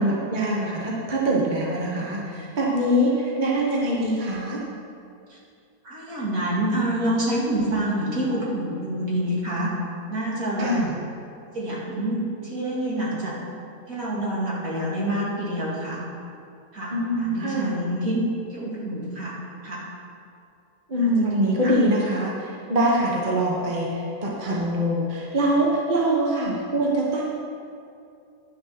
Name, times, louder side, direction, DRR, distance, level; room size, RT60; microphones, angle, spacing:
voice 1, 0.0-4.6 10.6-10.9 16.9-17.7 20.9-27.2, right 1 dB, 30° right, -3 dB, 1.3 m, -23 dB
voice 2, 5.8-9.7 10.1-10.7 11.5-13.3 13.9-16.0 16.7-16.9 17.2-18.2 18.5-19.3 19.6-19.8 21.0-21.7, right 1 dB, 55° right, -6 dB, 2.8 m, -27 dB
10.5 x 7.0 x 5.9 m, 2.5 s
omnidirectional pair, 1.8 m